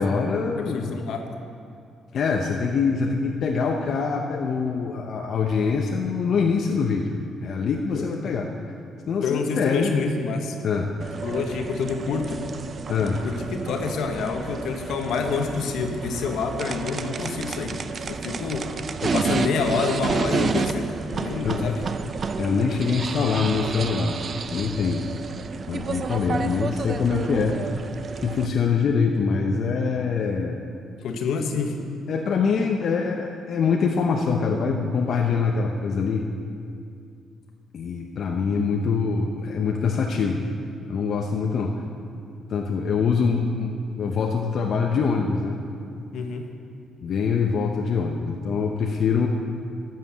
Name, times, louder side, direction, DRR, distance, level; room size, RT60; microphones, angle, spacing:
voice 1, 0.0-1.0 2.1-8.5 9.1-10.0 10.6-10.9 12.9-13.2 19.0-19.1 21.4-21.8 22.4-24.2 24.5-25.1 25.7-27.6 28.2-30.6 32.1-36.3 37.7-40.4 40.9-41.8 42.5-45.6 47.0-49.3, left 5 dB, 60° left, 1 dB, 0.8 m, -24 dB
voice 2, 0.6-1.4 7.9-8.0 9.2-10.6 11.2-12.4 13.2-18.7 19.1-21.8 31.0-31.8 46.1-46.5, left 5 dB, 80° left, 4 dB, 1.2 m, -28 dB
sound 1, 11.0-28.5, right 4 dB, 45° right, 0.5 m, -30 dB
13.0 x 7.6 x 6.3 m, 2.4 s
cardioid pair, 90°, 0 cm